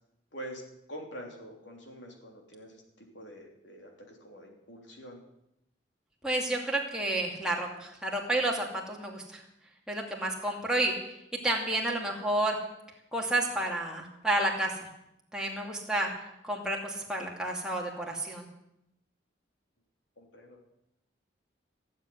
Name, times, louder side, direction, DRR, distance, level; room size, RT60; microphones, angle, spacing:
voice 1, 0.3-0.6 0.9-5.2 20.2-20.6, equal, 75° left, 1 dB, 3.5 m, -46 dB
voice 2, 6.2-9.4 9.9-10.9 11.3-12.6 13.1-14.9 15.3-16.1 16.4-18.4, right 1 dB, 5° right, -2 dB, 2.6 m, -30 dB
16.0 x 8.0 x 9.5 m, 0.85 s
head